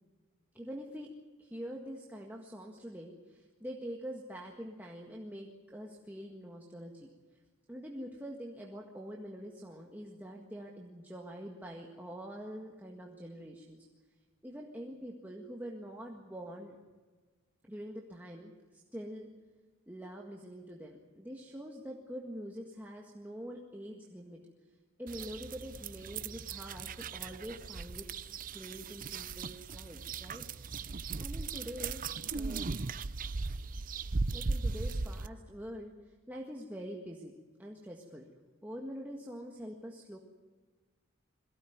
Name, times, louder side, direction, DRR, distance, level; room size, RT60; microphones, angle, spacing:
voice 1, 0.5-1.1 1.4-7.1 7.7-13.8 14.4-16.8 17.7-19.3 19.9-24.4 25.0-30.4 31.2-32.8 34.3-35.9 36.3-37.3 37.6-38.3 38.6-40.2, equal, 10° right, -1 dB, 1.7 m, -45 dB
sound 1, 25.1-35.3, right 4 dB, 40° right, 0.6 m, -38 dB
22.5 x 17.0 x 9.4 m, 1.4 s
head